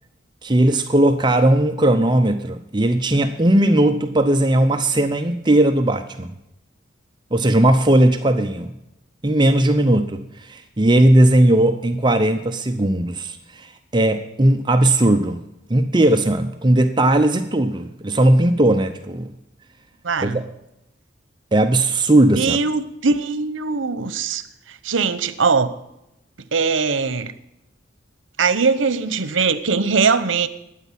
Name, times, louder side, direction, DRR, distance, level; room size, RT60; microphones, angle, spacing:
voice 1, 0.4-6.3 7.3-8.7 9.2-15.4 15.7-19.3 20.2-20.4 21.5-22.6, right 1 dB, 25° right, 7 dB, 0.7 m, -17 dB
voice 2, 20.0-20.4 22.3-24.5 24.8-25.7 26.5-27.3 28.4-30.5, right 4 dB, 85° right, 14 dB, 0.9 m, -20 dB
12.0 x 9.4 x 7.4 m, 0.85 s
head